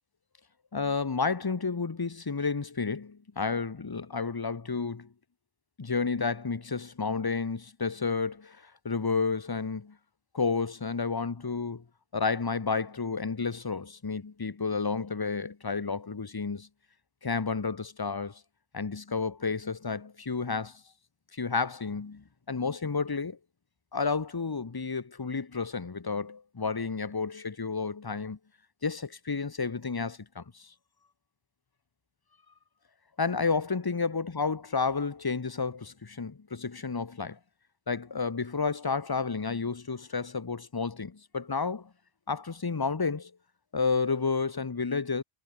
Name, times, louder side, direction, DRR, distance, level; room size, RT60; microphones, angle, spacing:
voice 1, 0.7-5.1 5.8-10.0 10.3-11.8 12.1-16.7 17.2-18.4 18.7-20.8 21.3-23.4 23.9-28.4 28.8-30.7 33.2-37.4 37.9-41.9 42.3-43.3 43.7-45.2, left 4 dB, 25° left, 0.6 m, -31 dB
omnidirectional pair, 1.1 m